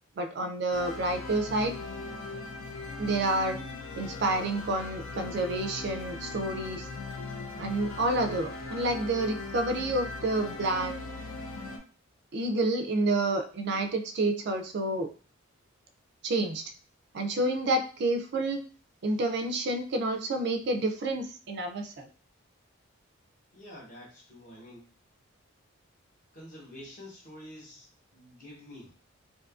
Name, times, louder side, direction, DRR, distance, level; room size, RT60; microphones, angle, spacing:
voice 1, 0.2-1.8 3.0-3.6 4.0-6.9 7.6-11.0 12.3-15.1 16.2-16.6 17.1-18.6 19.0-22.1, right 2 dB, 50° right, 6 dB, 0.3 m, -29 dB
sound 1, 0.7-11.8, left 3 dB, 80° left, 0.5 m, -39 dB
voice 2, 23.5-24.9 26.3-28.9, left 1 dB, 35° left, -4 dB, 0.9 m, -48 dB
2.6 x 2.4 x 2.4 m, 0.39 s
head